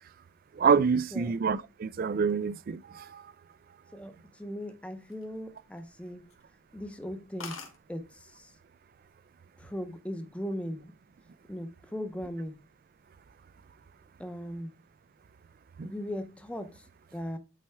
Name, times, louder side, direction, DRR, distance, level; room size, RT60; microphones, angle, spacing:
voice 1, 0.5-3.3 15.8-15.9, right 6 dB, 45° right, 0.3 m, -27 dB
voice 2, 3.9-6.2 6.7-7.6 7.9-8.5 9.6-10.9 11.5-12.6 14.2-14.7 15.8-16.8 17.1-17.4, equal, 5° left, 0.7 m, -38 dB
sound 1, 4.9-5.9 6.3-6.5 6.9-7.0 7.1-7.2 7.4-7.8 8.7-9.0 9.3-9.8, left 5 dB, 80° left, 1.5 m, -44 dB
8.4 x 4.3 x 3.4 m
head